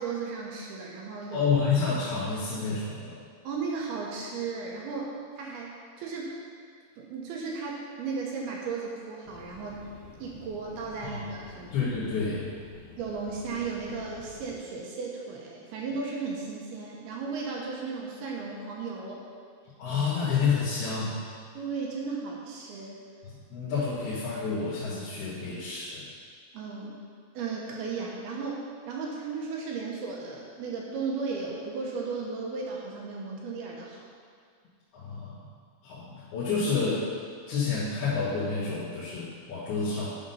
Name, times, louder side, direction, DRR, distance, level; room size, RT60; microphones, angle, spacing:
voice 1, 0.0-1.5 3.4-6.4 7.0-9.8 10.2-11.7 13.0-19.2 21.5-23.0 26.5-26.9 27.3-34.0, right 4 dB, 75° right, -2 dB, 2.5 m, -35 dB
voice 2, 1.3-3.2 11.0-11.2 11.7-12.5 19.8-21.2 23.2-26.1 34.9-35.5 35.8-37.1 37.5-40.2, left 5 dB, 70° left, -11 dB, 3.1 m, -29 dB
sound 1, 9.3-14.6, left 3 dB, 85° left, 3.2 m, -50 dB
10.5 x 3.7 x 5.5 m, 2.1 s
omnidirectional pair, 5.2 m